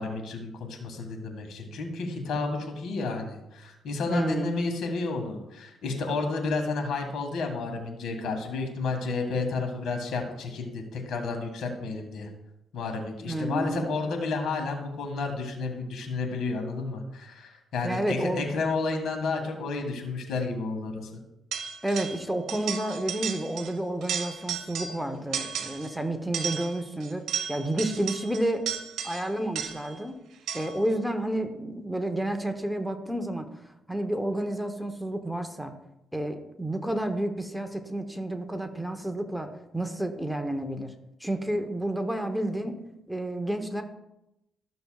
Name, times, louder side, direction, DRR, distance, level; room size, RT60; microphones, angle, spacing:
voice 1, 0.0-12.3 12.7-21.2, left 3 dB, 75° left, 4 dB, 1.8 m, -31 dB
voice 2, 4.1-4.5 13.3-14.0 17.8-18.5 21.8-27.2 27.5-28.6 29.0-30.2 30.5-33.5 33.9-35.7 36.1-39.5 39.7-40.9 41.2-42.8 43.1-43.8, right 1 dB, ahead, 6 dB, 0.9 m, -30 dB
sound 1, 21.5-22.2 22.5-23.7 24.0-25.0 25.3-25.9 26.3-30.0 30.5-30.9, right 8 dB, 75° right, 1.0 m, -34 dB
13.5 x 6.7 x 2.4 m, 0.90 s
cardioid pair, 90°, 0 cm